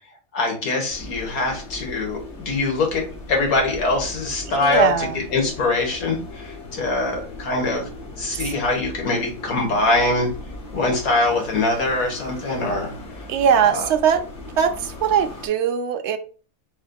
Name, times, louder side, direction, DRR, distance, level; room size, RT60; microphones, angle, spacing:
voice 1, 0.3-7.9 8.2-10.3 10.7-13.2 13.6-13.9, left 2 dB, 90° left, 1 dB, 1.8 m, -23 dB
sound 1, 0.9-15.5, left 2 dB, 55° left, 1.2 m, -38 dB
voice 2, 4.6-5.2 8.3-8.5 13.3-14.2 14.6-16.2, right 7 dB, 65° right, 8 dB, 0.7 m, -20 dB
4.2 x 3.8 x 2.2 m, 0.38 s
omnidirectional pair, 1.5 m